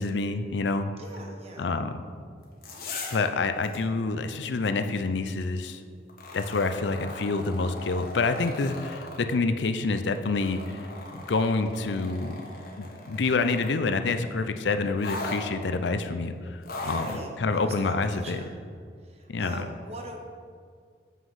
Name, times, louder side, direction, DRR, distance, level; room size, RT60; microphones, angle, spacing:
voice 1, 0.0-0.9 1.6-1.9 3.1-5.8 6.3-10.8 11.1-12.4 12.8-17.1 17.4-18.4 19.3-19.6, left 3 dB, 85° left, 9 dB, 0.5 m, -27 dB
voice 2, 1.0-1.7 16.8-18.6 19.0-20.2, right 1 dB, 35° right, 2 dB, 1.0 m, -42 dB
sound 1, 2.4-3.3 3.6-3.8 6.1-9.2 10.1-13.8 15.0-15.4 16.6-17.2 18.2-18.3, left 2 dB, 55° left, 1.3 m, -39 dB
7.4 x 5.9 x 5.6 m, 2.1 s
head